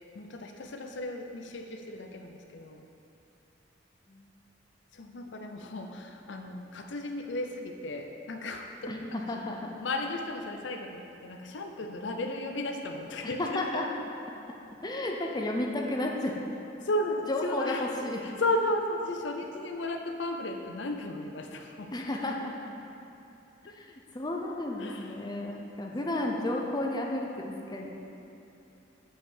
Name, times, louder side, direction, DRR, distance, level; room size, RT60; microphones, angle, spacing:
voice 1, 0.1-2.9 4.9-9.0 9.8-14.0 16.8-21.9 23.7-23.8 24.8-25.4, left 1 dB, 70° left, 4 dB, 0.6 m, -34 dB
voice 2, 8.9-9.8 13.2-13.9 14.8-16.4 17.3-18.2 21.9-22.5 23.7-27.9, left 1 dB, 20° left, 0 dB, 0.7 m, -32 dB
6.6 x 5.5 x 7.2 m, 2.9 s
head